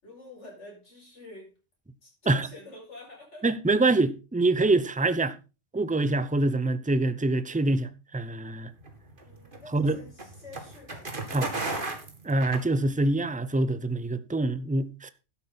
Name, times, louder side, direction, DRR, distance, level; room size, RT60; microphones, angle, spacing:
voice 1, 0.0-1.6 2.0-3.5 9.2-11.1, left 2 dB, 70° left, 7.0 m, -48 dB
voice 2, 3.4-5.4 5.7-8.7 9.7-10.0 11.3-11.6 12.2-15.1, right 2 dB, 10° right, 0.6 m, -25 dB
sound 1, 8.8-13.2, right 2 dB, 45° right, 2.4 m, -35 dB
12.5 x 10.0 x 4.1 m
omnidirectional pair, 1.3 m